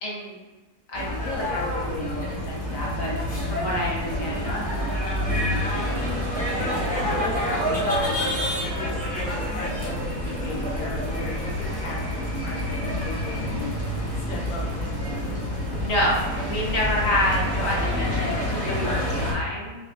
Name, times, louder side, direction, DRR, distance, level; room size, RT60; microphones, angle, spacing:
voice 1, 0.0-0.3 0.9-3.1 3.4-4.6 15.8-19.8, left 1 dB, 55° left, -4 dB, 1.1 m, -28 dB
sound 1, 0.9-19.3, left 1 dB, 10° left, 0.5 m, -27 dB
voice 2, 5.7-6.1 6.5-8.2 8.6-13.8 14.2-15.4 18.0-18.3, left 2 dB, 85° left, -2 dB, 1.6 m, -38 dB
5.3 x 2.9 x 2.5 m, 1.2 s
omnidirectional pair, 2.0 m